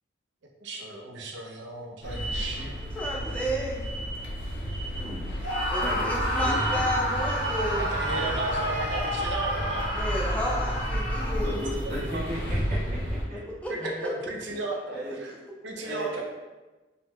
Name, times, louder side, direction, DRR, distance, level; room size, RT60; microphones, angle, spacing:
voice 1, 0.6-2.7 7.8-10.0 11.5-12.2 13.7-15.3 15.6-16.2, right 2 dB, 80° right, 1 dB, 0.5 m, -35 dB
sound 1, 2.0-13.2, equal, 75° left, 0.8 m, -32 dB
voice 2, 2.8-3.9 5.7-7.9 9.9-11.6 13.6-13.7 14.0-14.1, equal, 5° left, -4 dB, 0.4 m, -32 dB
voice 3, 4.9-5.5 5.7-6.6 11.3-13.4 13.7-14.0 14.9-15.1 15.8-16.2, right 1 dB, 60° right, -14 dB, 1.0 m, -36 dB
Screaming, 5.4-11.7, equal, 90° left, 1.3 m, -30 dB
3.8 x 2.1 x 2.9 m, 1.2 s
head